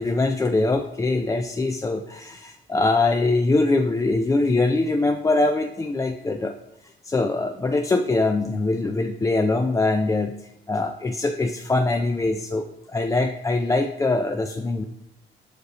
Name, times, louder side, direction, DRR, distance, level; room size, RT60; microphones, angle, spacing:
voice 1, 0.0-6.6 7.0-14.9, left 2 dB, 15° left, 5 dB, 0.3 m, -23 dB
5.0 x 4.8 x 4.0 m, 0.83 s
cardioid pair, 90°, 20 cm